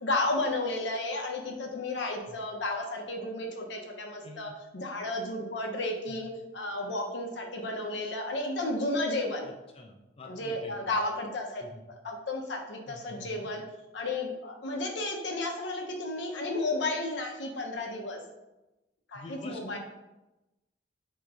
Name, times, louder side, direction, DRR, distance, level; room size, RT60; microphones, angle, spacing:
voice 1, 0.0-9.5 10.3-11.6 12.0-13.6 13.9-18.2 19.1-19.8, left 2 dB, 85° left, 1 dB, 0.8 m, -33 dB
voice 2, 9.4-10.9 11.6-11.8 12.9-13.5 19.1-19.8, left 2 dB, 35° left, 1 dB, 0.5 m, -47 dB
3.7 x 2.9 x 4.7 m, 1.0 s
head